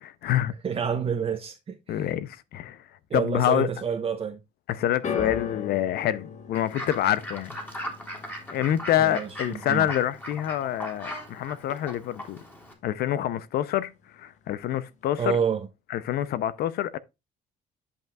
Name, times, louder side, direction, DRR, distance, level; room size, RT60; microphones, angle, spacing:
voice 1, 0.0-0.5 1.9-2.8 3.1-3.7 4.7-7.6 8.5-12.4 12.8-15.4 15.9-17.0, left 12 dB, 70° left, 0.5 m, -27 dB
voice 2, 0.6-2.1 3.1-4.4 9.0-9.9 15.2-15.7, right 7 dB, 35° right, 1.0 m, -28 dB
sound 1, 5.0-11.3 11.6-12.2 13.0-13.1, left 6 dB, 45° left, 1.5 m, -39 dB
Fowl / Bird, 6.5-12.7, equal, 10° left, 3.0 m, -39 dB
11.0 x 5.4 x 2.3 m
cardioid pair, 110°, 17 cm